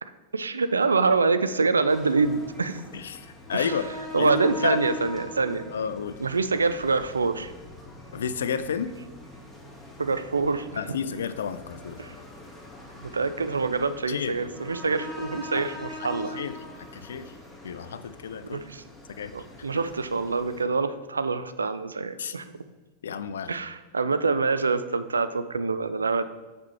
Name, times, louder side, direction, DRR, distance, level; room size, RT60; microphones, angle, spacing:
voice 1, 0.0-2.8 3.5-3.8 4.1-5.7 6.2-7.5 10.0-10.8 12.0-12.1 13.0-16.4 18.5-18.8 19.3-22.4 23.5-26.3, right 4 dB, 75° right, 12 dB, 0.4 m, -26 dB
sound 1, 1.9-20.6, left 2 dB, ahead, 1.9 m, -42 dB
voice 2, 2.9-3.9 4.2-4.8 5.7-6.2 8.1-8.9 10.8-12.0 14.1-14.4 15.5-15.6 16.0-17.3 17.6-18.6 19.2-19.3 22.2-22.4 23.0-23.6, left 7 dB, 65° left, 13 dB, 0.4 m, -31 dB
8.2 x 4.3 x 4.5 m, 1.2 s
figure-of-eight pair, 90°, 0 cm